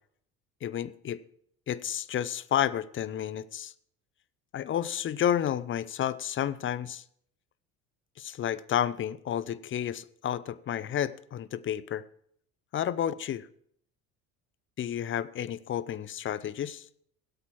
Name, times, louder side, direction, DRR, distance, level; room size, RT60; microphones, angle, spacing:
voice 1, 0.6-1.2 1.7-3.7 4.5-7.0 8.2-12.0 12.7-13.5 14.8-16.9, left 10 dB, 30° left, 17 dB, 0.5 m, -31 dB
16.0 x 8.3 x 4.6 m, 0.67 s
hypercardioid pair, 65°, 44 cm